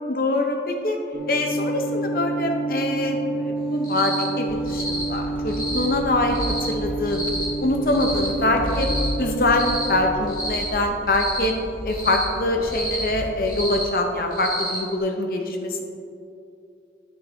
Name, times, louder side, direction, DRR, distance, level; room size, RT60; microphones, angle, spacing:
voice 1, 0.1-1.0 1.3-7.3 7.6-8.9 9.2-11.6 11.8-15.8, left 2 dB, 55° left, 3 dB, 0.8 m, -24 dB
sound 1, 1.1-10.1, right 2 dB, 40° right, 1.4 m, -29 dB
Cricket, 3.8-4.2 4.7-5.0 5.5-5.8 6.3-6.7 7.1-7.4 7.9-8.3 8.7-9.1 9.5-9.9 10.3-10.6 11.1-11.5 11.9-12.2 12.6-13.0 13.4-13.8 14.3-14.8, equal, 25° left, 2.0 m, -30 dB
sound 2, 4.5-13.9, equal, 10° left, 0.4 m, -34 dB
9.5 x 8.6 x 2.8 m, 2.6 s
head